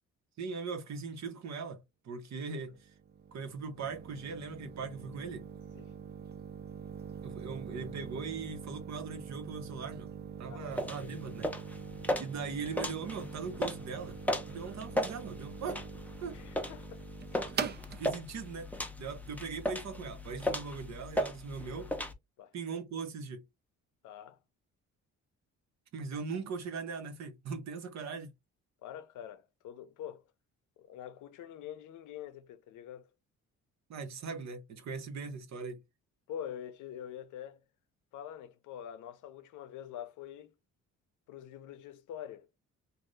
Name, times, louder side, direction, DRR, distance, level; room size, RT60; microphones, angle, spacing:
voice 1, 0.4-2.9 3.3-5.4 7.2-10.1 10.4-11.5 12.2-14.2 14.4-15.8 16.2-16.4 17.5-18.7 19.0-21.9 22.5-23.4 25.9-28.3 33.9-35.8, right 5 dB, 65° right, 1.1 m, -40 dB
sound 1, 2.6-20.1, right 6 dB, 35° right, 0.5 m, -44 dB
voice 2, 10.5-11.1 16.3-17.1 22.4-22.5 24.0-24.4 28.8-30.2 30.8-33.1 36.3-37.6 38.1-40.5 41.3-42.5, left 10 dB, 80° left, 0.6 m, -45 dB
sound 2, 10.7-22.1, left 1 dB, 5° left, 0.7 m, -37 dB
2.6 x 2.6 x 3.2 m
cardioid pair, 90°, 30 cm